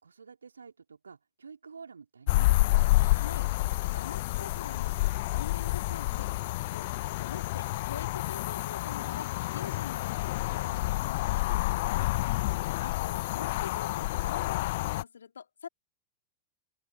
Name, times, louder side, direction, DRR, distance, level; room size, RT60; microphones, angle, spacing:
voice 1, 0.0-2.8, right 5 dB, 75° right, 3.4 m, -49 dB
sound 1, 2.3-15.0, left 19 dB, 50° left, 0.9 m, -29 dB
voice 2, 2.9-3.5 3.9-5.0 5.3-6.3 6.7-12.1 12.8-15.7, left 7 dB, 70° left, 3.8 m, -45 dB
open air
figure-of-eight pair, 90°, 0 cm